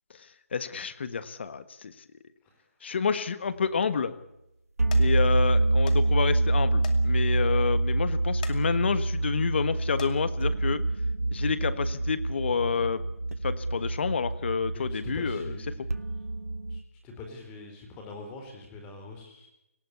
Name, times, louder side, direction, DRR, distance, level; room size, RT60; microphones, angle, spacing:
voice 1, 0.5-1.9 2.8-4.1 5.0-10.8 11.3-13.0 13.4-15.7, left 6 dB, 50° left, 14 dB, 1.4 m, -29 dB
sound 1, 3.5-3.9 4.4-4.6 4.9-5.1 5.9-6.0 6.3-6.4 6.8-7.0 7.4-7.5 8.3-8.6 9.1-9.3 9.8-10.1 11.1-11.2 11.7-11.8, left 8 dB, 35° left, 2.4 m, -43 dB
sound 2, 4.8-16.8, right 2 dB, 85° right, 1.6 m, -26 dB
voice 2, 14.7-16.0 16.7-19.5, left 3 dB, 15° left, 3 dB, 4.1 m, -44 dB
19.0 x 18.5 x 8.4 m, 0.86 s
figure-of-eight pair, 155°, 8 cm